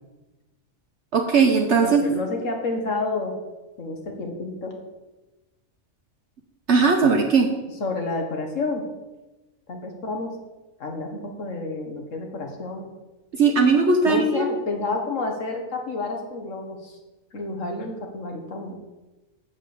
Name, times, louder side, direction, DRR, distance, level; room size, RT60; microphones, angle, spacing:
voice 1, 1.1-2.0 6.7-7.5 13.3-14.5, right 4 dB, 60° right, 3 dB, 1.1 m, -18 dB
voice 2, 1.8-3.3 3.8-4.7 7.8-8.8 9.7-10.3 10.8-12.9 14.1-17.0 17.3-18.7, left 3 dB, 65° left, 3 dB, 1.9 m, -29 dB
7.6 x 7.4 x 6.7 m, 1.1 s
omnidirectional pair, 1.4 m